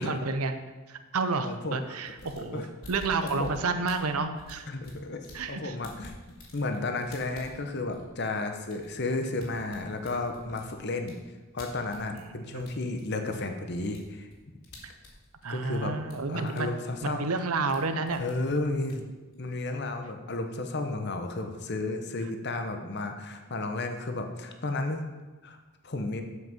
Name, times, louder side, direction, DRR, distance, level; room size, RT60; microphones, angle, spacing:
voice 1, 0.0-4.7 5.3-5.8 12.1-12.7 14.8-14.9 15.4-16.7 17.0-18.2 18.8-18.9, right 3 dB, 85° right, 9 dB, 0.7 m, -31 dB
voice 2, 1.4-1.8 2.5-2.7 3.2-3.5 4.7-5.2 5.5-6.1 6.5-11.1 11.5-14.3 15.5-16.0 16.3-17.3 18.2-19.0 19.4-25.0 25.4-25.6 25.8-26.2, left 2 dB, 50° left, 6 dB, 0.9 m, -32 dB
sound 1, 2.1-5.5 5.8-12.3 12.6-15.7 16.0-16.6 16.9-17.8 18.1-19.7, left 1 dB, 80° left, 2.7 m, -50 dB
8.0 x 5.8 x 7.2 m, 1.2 s
head